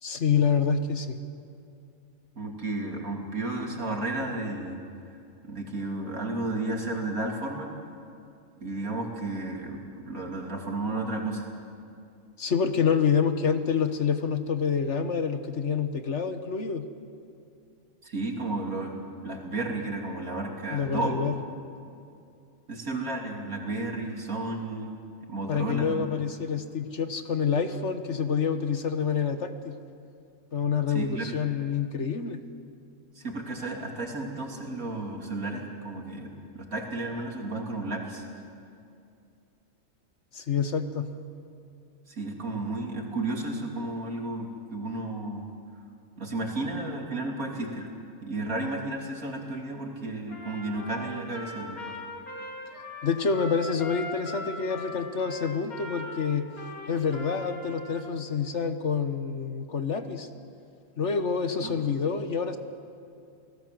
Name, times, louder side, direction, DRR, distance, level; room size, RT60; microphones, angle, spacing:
voice 1, 0.0-1.2 12.4-16.9 20.7-21.4 25.5-29.8 30.5-32.4 40.3-41.1 53.0-56.5 56.9-60.3 61.0-62.6, left 6 dB, 55° left, 8 dB, 1.5 m, -27 dB
voice 2, 2.4-4.8 5.4-7.8 8.6-11.5 18.0-21.2 22.7-24.9 25.3-26.0 30.9-31.3 33.1-38.2 42.1-45.5 46.2-47.9 48.2-51.8 61.6-61.7, right 2 dB, 75° right, 1 dB, 3.5 m, -33 dB
Trumpet, 50.3-58.1, left 1 dB, 80° left, 3.3 m, -40 dB
30.0 x 18.5 x 7.8 m, 2.5 s
omnidirectional pair, 1.5 m